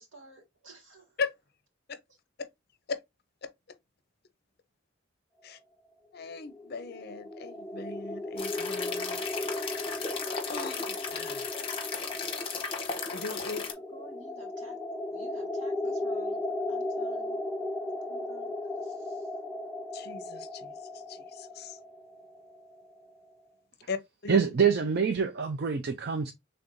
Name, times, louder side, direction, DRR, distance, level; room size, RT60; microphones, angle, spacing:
voice 1, 0.0-1.2 13.5-13.6 13.9-14.8 15.1-16.4 16.7-17.4 18.1-18.5 18.8-19.3, right 2 dB, 75° right, 1.8 m, -52 dB
voice 2, 6.1-10.2 10.5-11.6 13.1-13.6 19.9-21.8 23.9-24.4, left 4 dB, 50° left, 0.5 m, -39 dB
sound 1, 6.3-23.1, left 2 dB, 5° right, 0.6 m, -36 dB
sound 2, 8.4-13.7, left 5 dB, 30° left, 0.8 m, -35 dB
voice 3, 24.3-26.3, right 6 dB, 55° right, 0.5 m, -26 dB
5.3 x 3.4 x 2.6 m
head